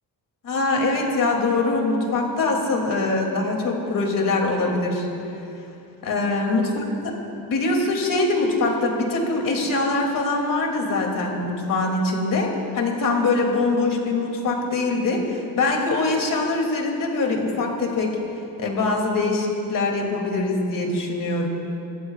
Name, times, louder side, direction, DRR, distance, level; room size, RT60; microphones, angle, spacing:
voice 1, 0.4-5.1 6.0-6.6 7.4-18.2 18.6-21.5, left 3 dB, 60° left, 1 dB, 2.6 m, -23 dB
29.5 x 15.0 x 2.4 m, 2.8 s
cardioid pair, 130°, 37 cm